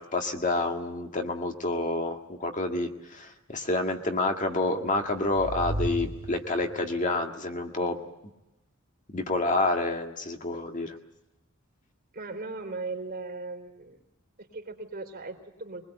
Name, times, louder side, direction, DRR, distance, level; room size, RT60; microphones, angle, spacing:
voice 1, 0.0-8.0 9.1-11.0, left 2 dB, 35° left, 4 dB, 1.8 m, -28 dB
sound 1, 4.6-7.0, right 1 dB, 90° right, 3.7 m, -35 dB
voice 2, 12.1-14.0 14.4-15.8, right 3 dB, 45° right, 3 dB, 3.9 m, -38 dB
23.5 x 21.0 x 8.1 m, 0.95 s
head